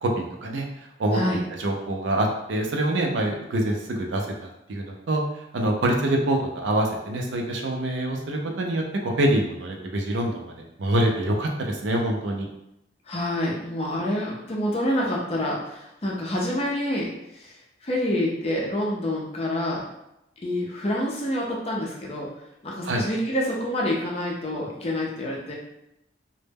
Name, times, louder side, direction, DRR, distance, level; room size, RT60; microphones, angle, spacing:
voice 1, 0.0-0.7 1.0-1.2 1.6-5.2 5.5-10.4 10.8-12.5 22.8-23.0, right 1 dB, 70° right, 2 dB, 0.4 m, -25 dB
voice 2, 13.1-19.9 20.4-22.3 22.6-25.5, left 1 dB, 30° left, -3 dB, 0.5 m, -27 dB
2.1 x 2.0 x 3.3 m, 0.85 s
head